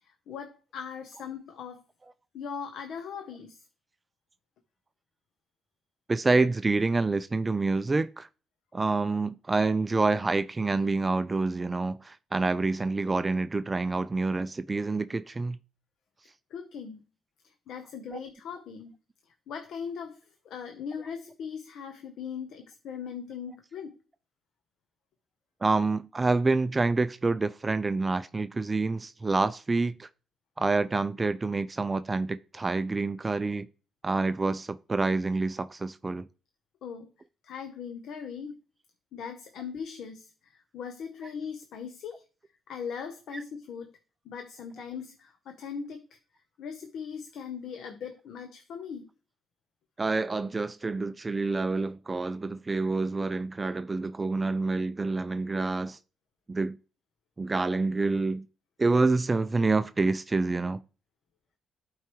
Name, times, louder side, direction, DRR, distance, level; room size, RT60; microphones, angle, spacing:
voice 1, 0.0-1.8 2.3-3.6 16.5-17.0 17.4-19.0 19.5-23.9 36.8-37.1 37.4-38.5 39.1-42.2 42.7-43.9 44.2-46.0 46.6-49.1, left 6 dB, 75° left, 0.8 m, -39 dB
voice 2, 6.1-8.3 8.7-15.6 18.1-18.2 25.6-30.1 30.6-33.7 34.0-36.3 43.3-43.4 50.0-56.0 56.5-56.8 57.4-58.5 58.8-60.8, right 3 dB, 25° right, 0.3 m, -27 dB
11.5 x 4.6 x 3.0 m
cardioid pair, 90°, 0 cm